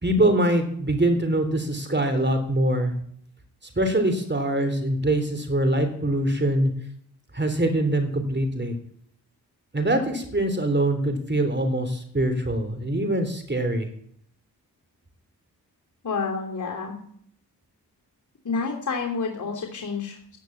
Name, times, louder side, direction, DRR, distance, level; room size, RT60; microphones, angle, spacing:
voice 1, 0.0-2.9 3.8-6.7 7.3-8.8 9.7-13.9, right 1 dB, 25° right, 7 dB, 3.4 m, -23 dB
voice 2, 16.0-17.0 18.4-20.4, left 4 dB, 45° left, 0 dB, 3.1 m, -29 dB
10.5 x 10.5 x 8.4 m, 0.65 s
supercardioid pair, 40°, 40 cm